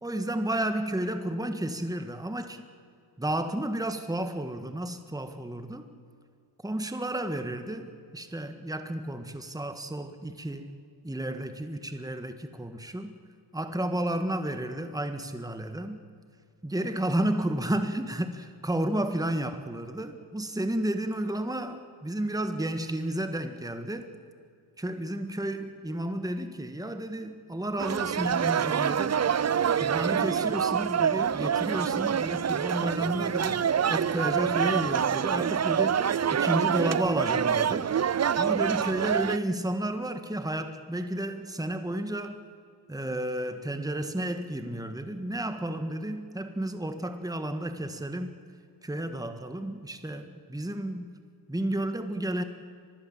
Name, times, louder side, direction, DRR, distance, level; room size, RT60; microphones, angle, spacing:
voice 1, 0.0-2.6 3.2-5.9 6.6-10.7 11.0-13.2 13.5-16.0 16.6-24.1 24.8-29.2 29.8-37.9 38.4-42.4 42.9-48.3 48.8-51.1 51.5-52.4, right 1 dB, 5° right, 8 dB, 1.6 m, -32 dB
sound 1, 27.8-39.4, right 8 dB, 35° right, 0.5 m, -26 dB
24.0 x 20.5 x 7.5 m, 2.3 s
cardioid pair, 70°, 50 cm